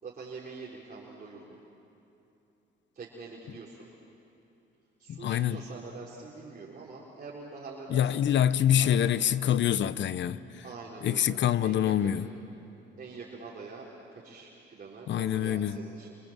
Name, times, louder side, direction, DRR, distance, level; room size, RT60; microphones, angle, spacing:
voice 1, 0.0-1.6 2.9-3.9 5.0-8.4 8.7-8.9 10.6-12.2 13.0-16.2, right 4 dB, 45° right, -5 dB, 4.1 m, -44 dB
voice 2, 5.1-5.6 7.9-10.6 11.0-12.3 15.1-15.8, left 10 dB, 65° left, 15 dB, 0.9 m, -26 dB
28.0 x 26.5 x 7.5 m, 2.9 s
cardioid pair, 90°, 20 cm